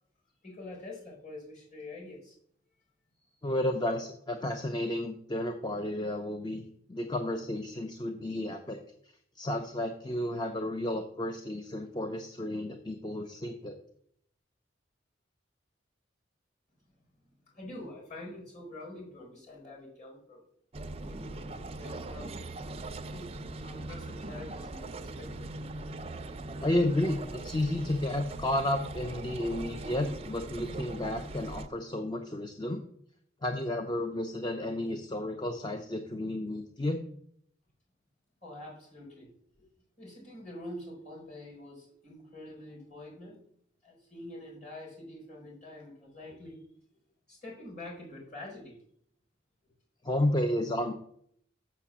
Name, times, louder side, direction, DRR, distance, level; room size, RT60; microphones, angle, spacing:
voice 1, 0.4-2.3 17.5-20.4 21.1-21.5 21.8-22.3 23.1-23.3 23.6-25.5 38.4-39.3 39.6-39.7 40.0-43.4 43.8-46.6 47.3-48.8, left 1 dB, 40° left, -2 dB, 4.4 m, -46 dB
voice 2, 3.4-6.6 6.9-8.8 9.4-13.8 26.6-32.8 33.4-37.0 50.0-50.9, left 1 dB, 25° left, 5 dB, 0.6 m, -32 dB
sound 1, 20.7-31.7, right 2 dB, 30° right, 0.5 m, -40 dB
6.8 x 6.0 x 7.3 m, 0.66 s
head